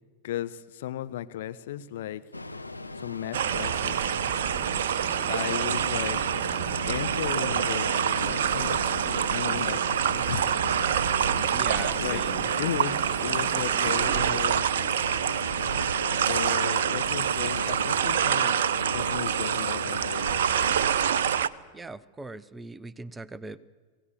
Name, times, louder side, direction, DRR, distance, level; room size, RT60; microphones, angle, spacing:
voice 1, 0.2-2.2 3.0-4.1 5.3-6.2 6.9-8.8 9.3-10.6 11.3-11.7 12.0-12.2 12.6-14.9 16.3-18.6 18.9-20.4, left 12 dB, 55° left, 11 dB, 0.9 m, -35 dB
Ocean, 2.3-21.4, left 2 dB, 85° left, 0.9 m, -38 dB
sound 1, 3.3-21.5, right 9 dB, 60° right, 0.6 m, -26 dB
sound 2, 3.4-14.5, right 5 dB, 30° right, 3.2 m, -41 dB
voice 2, 11.5-12.5 21.7-23.6, right 2 dB, 10° right, 18 dB, 0.7 m, -40 dB
26.5 x 17.5 x 6.8 m, 1.5 s
figure-of-eight pair, 90°, 0 cm